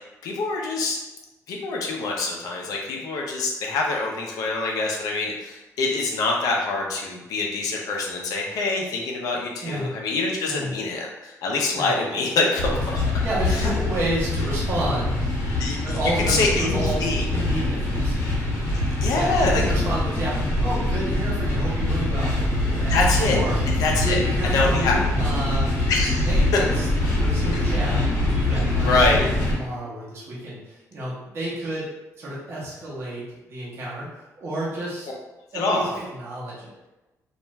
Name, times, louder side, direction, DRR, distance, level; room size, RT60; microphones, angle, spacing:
voice 1, 0.2-1.0 1.5-13.0 13.5-13.7 15.6-17.3 19.0-19.6 22.9-23.4 23.7-24.2 24.5-24.9 25.9-26.6 27.5-27.7 28.8-29.3 35.5-35.9, left 3 dB, 85° left, 0 dB, 0.5 m, -25 dB
voice 2, 9.6-9.9 10.4-10.7 11.7-12.0 13.2-15.3 15.8-18.3 19.1-23.6 24.0-25.7 26.2-26.9 27.1-29.1 29.5-31.9 32.2-35.1 35.5-36.7, right 1 dB, 45° right, -7 dB, 0.8 m, -30 dB
sound 1, 12.6-29.6, left 2 dB, 50° left, 1.0 m, -24 dB
2.4 x 2.2 x 3.0 m, 1.0 s
cardioid pair, 160°, 6 cm